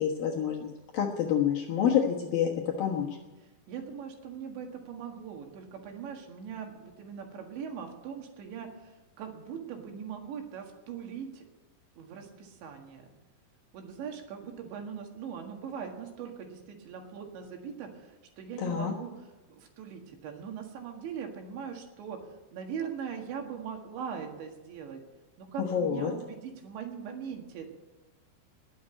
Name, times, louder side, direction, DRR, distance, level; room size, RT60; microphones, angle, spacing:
voice 1, 0.0-2.5 2.8-3.1 18.6-18.9 25.6-26.1, left 8 dB, 65° left, -1 dB, 2.5 m, -28 dB
voice 2, 3.7-11.5 12.0-13.1 13.7-19.2 19.5-22.2 22.5-25.0 25.4-27.7, right 7 dB, 70° right, 3 dB, 3.9 m, -40 dB
20.0 x 7.8 x 9.0 m, 1.1 s
omnidirectional pair, 5.7 m